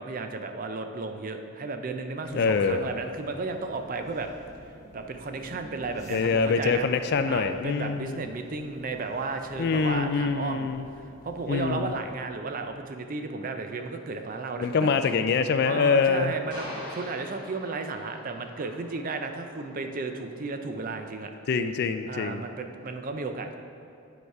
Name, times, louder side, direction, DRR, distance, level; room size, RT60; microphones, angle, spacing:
voice 1, 0.0-4.3 4.9-6.9 7.3-14.9 15.6-21.3 22.0-23.5, right 3 dB, 40° right, 6 dB, 0.4 m, -34 dB
sound 1, 2.2-12.2, equal, 15° left, 0.9 m, -51 dB
voice 2, 2.3-2.9 6.1-8.2 9.6-10.9 11.5-11.9 14.6-16.3 21.5-22.4, left 5 dB, 45° left, 9 dB, 0.3 m, -25 dB
sound 2, 13.6-21.1, left 1 dB, 20° right, 1.7 m, -46 dB
7.8 x 4.8 x 4.6 m, 2.7 s
head